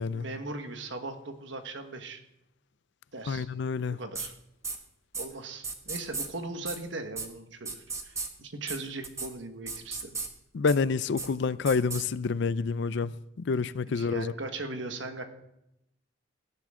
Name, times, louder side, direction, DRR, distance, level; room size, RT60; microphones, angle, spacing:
voice 1, 0.1-2.2 3.1-3.5 3.9-4.3 5.2-10.1 11.4-11.5 13.9-15.2, right 2 dB, 65° right, 1.6 m, -39 dB
voice 2, 3.3-4.0 10.5-13.1 13.4-14.3, left 4 dB, 60° left, 0.4 m, -28 dB
sound 1, 4.2-4.3 4.6-4.8 5.1-5.3 5.6-6.3 6.7-6.8 7.2-7.3 7.7-8.3 8.7-8.8 9.0-9.3 9.7-10.3 10.7-10.8 11.2-11.3 11.7-12.0, right 4 dB, 15° right, 1.2 m, -34 dB
17.5 x 11.5 x 3.8 m
head